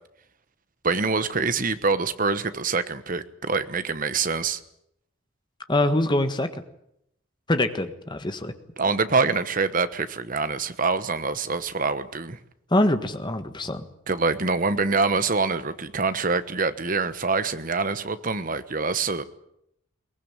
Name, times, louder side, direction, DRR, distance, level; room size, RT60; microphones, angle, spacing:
voice 1, 0.8-4.6 8.8-12.4 14.1-19.2, right 4 dB, 40° right, 12 dB, 1.2 m, -25 dB
voice 2, 5.7-6.5 7.5-8.5 12.7-13.8, left 1 dB, 20° left, 8 dB, 1.6 m, -24 dB
22.0 x 19.5 x 9.1 m, 0.77 s
head